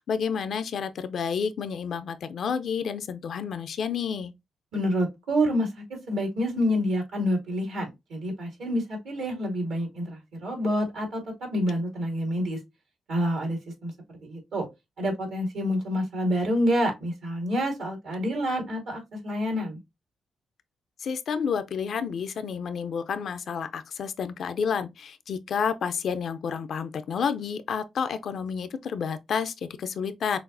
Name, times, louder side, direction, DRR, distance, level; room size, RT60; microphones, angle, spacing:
voice 1, 0.0-4.3 21.0-30.4, left 6 dB, 65° left, 0.4 m, -30 dB
voice 2, 4.7-12.6 13.1-13.9 14.2-14.7 15.0-19.8, equal, 75° right, 2.0 m, -28 dB
5.9 x 2.1 x 2.5 m
supercardioid pair, 45°, 0 cm